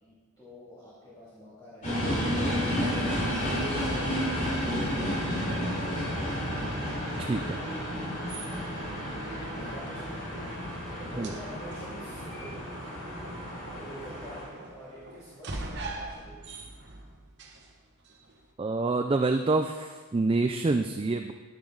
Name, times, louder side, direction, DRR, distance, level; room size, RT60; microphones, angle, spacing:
voice 1, 0.0-2.6 2.9-4.1 4.4-5.8 6.1-6.6 8.8-13.0 13.7-16.6, right 1 dB, 15° left, -10 dB, 2.3 m, -47 dB
sound 1, 1.8-14.4, equal, 35° left, 4.0 m, -31 dB
sound 2, 6.8-18.5, right 2 dB, 50° right, 1.2 m, -46 dB
voice 2, 7.2-7.6 11.2-11.3 18.6-21.3, right 3 dB, 25° right, 6 dB, 0.3 m, -27 dB
11.0 x 10.5 x 3.8 m, 1.4 s
head